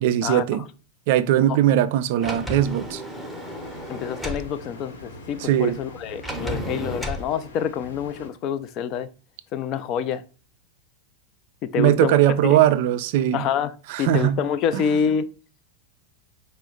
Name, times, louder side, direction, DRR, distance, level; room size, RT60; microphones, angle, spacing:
voice 1, 0.0-0.6 1.1-3.0 5.4-5.8 11.8-13.4 13.9-14.4 14.7-14.8, right 12 dB, 50° right, 0.3 m, -20 dB
Sliding door, 2.2-4.5 6.2-7.3, equal, 5° left, 0.7 m, -32 dB
sound 1, 2.6-8.3, left 2 dB, 65° left, 0.9 m, -44 dB
voice 2, 3.9-9.1 9.5-10.2 11.6-12.2 12.5-12.6 13.3-13.7 14.0-15.3, left 8 dB, 35° left, 0.3 m, -27 dB
4.8 x 2.1 x 3.7 m
figure-of-eight pair, 90°, 0 cm